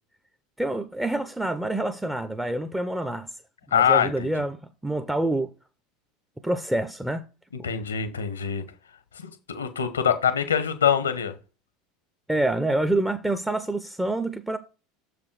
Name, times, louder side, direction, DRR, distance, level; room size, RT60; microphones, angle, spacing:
voice 1, 0.6-3.3 3.7-4.6 4.8-5.5 6.4-7.2 12.3-14.6, right 1 dB, 5° right, 0.7 m, -26 dB
voice 2, 3.7-4.3 7.6-8.6 9.2-11.3, left 8 dB, 85° left, 1.0 m, -24 dB
7.0 x 5.0 x 4.7 m
figure-of-eight pair, 75°, 0 cm